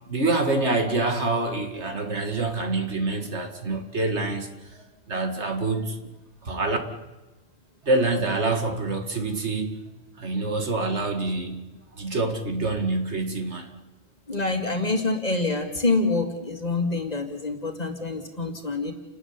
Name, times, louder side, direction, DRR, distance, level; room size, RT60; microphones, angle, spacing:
voice 1, 0.1-6.0 6.4-6.8 7.8-9.8 10.2-13.7, right 2 dB, 60° right, 2.4 m, -26 dB
voice 2, 14.3-18.9, left 3 dB, 30° left, 2.5 m, -26 dB
29.0 x 13.0 x 9.7 m
omnidirectional pair, 1.3 m